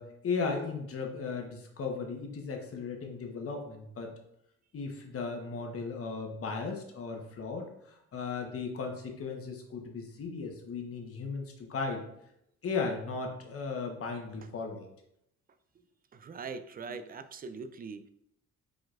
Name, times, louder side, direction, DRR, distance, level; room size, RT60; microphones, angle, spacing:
voice 1, 0.0-4.1 4.7-12.0 12.6-14.9, left 4 dB, 50° left, 2 dB, 1.0 m, -36 dB
voice 2, 16.1-18.1, right 5 dB, 30° right, 12 dB, 0.4 m, -42 dB
5.1 x 3.8 x 2.4 m, 0.76 s
cardioid pair, 90°, 30 cm